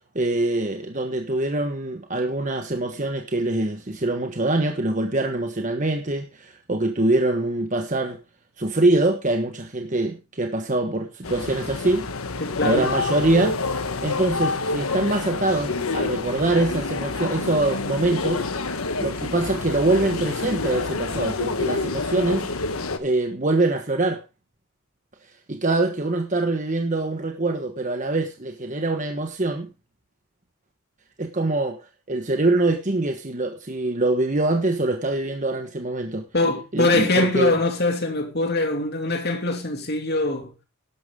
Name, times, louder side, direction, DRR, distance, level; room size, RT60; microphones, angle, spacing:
voice 1, 0.1-8.2 8.6-12.1 12.6-13.6 14.0-18.4 19.0-22.5 23.0-24.2 25.5-29.7 31.2-31.8 32.1-36.3 36.7-37.5, right 2 dB, 35° right, 1.3 m, -24 dB
sound 1, 11.2-23.0, left 3 dB, 80° left, 1.4 m, -28 dB
voice 2, 12.4-12.9 36.3-40.5, left 2 dB, 50° left, 2.7 m, -23 dB
12.0 x 11.5 x 3.7 m
head